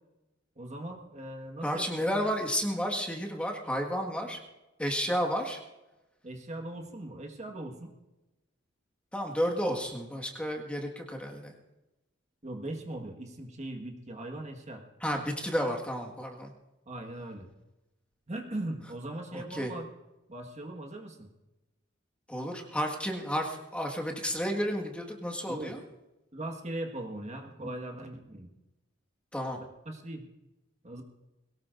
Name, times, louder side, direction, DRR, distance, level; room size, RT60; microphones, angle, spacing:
voice 1, 0.6-1.9 6.2-7.9 12.4-14.8 16.9-17.5 18.3-19.9 20.3-21.3 25.5-25.7 26.3-28.5 29.8-30.3 30.8-31.0, right 1 dB, 35° right, 3 dB, 1.6 m, -39 dB
voice 2, 1.6-4.4 4.8-5.6 9.1-11.5 15.0-16.5 19.3-19.7 22.3-25.8 29.3-29.6, equal, 5° left, 1 dB, 1.7 m, -32 dB
22.0 x 18.0 x 2.6 m, 1.0 s
head